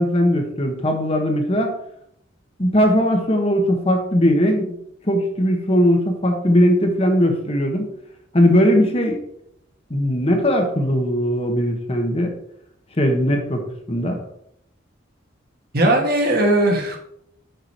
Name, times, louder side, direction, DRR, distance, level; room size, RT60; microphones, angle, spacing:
voice 1, 0.0-1.7 2.6-4.8 5.0-7.9 8.3-9.2 9.9-12.3 13.0-14.2, equal, 30° left, 3 dB, 1.2 m, -19 dB
voice 2, 15.7-17.0, right 1 dB, 50° right, 2 dB, 1.6 m, -18 dB
6.8 x 6.1 x 4.6 m, 0.72 s
head